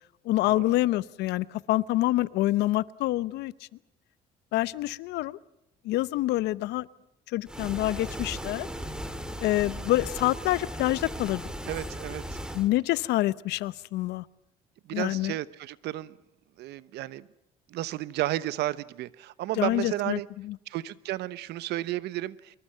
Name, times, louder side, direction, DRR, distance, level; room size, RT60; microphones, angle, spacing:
voice 1, 0.2-3.5 4.5-5.4 5.8-6.9 7.3-8.7 9.4-11.4 12.5-14.2 14.9-15.3 19.6-20.6, left 16 dB, 85° left, 19 dB, 0.8 m, -27 dB
sound 1, 7.5-12.7, equal, 5° right, 2.7 m, -37 dB
voice 2, 11.7-12.4 14.8-16.2 16.6-17.3 17.7-20.3 20.7-22.6, right 15 dB, 80° right, 17 dB, 1.0 m, -33 dB
25.5 x 23.0 x 5.7 m, 0.88 s
cardioid pair, 110°, 17 cm